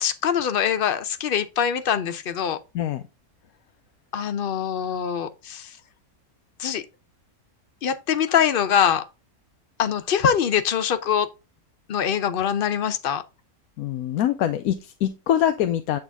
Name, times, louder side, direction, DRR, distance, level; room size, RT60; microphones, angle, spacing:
voice 1, 0.0-2.6 4.1-5.7 6.6-6.9 7.8-9.0 9.8-11.3 11.9-13.2, left 8 dB, 50° left, 0.7 m, -23 dB
voice 2, 13.8-16.0, left 11 dB, 90° left, 1.1 m, -24 dB
9.0 x 3.9 x 3.5 m
omnidirectional pair, 1.5 m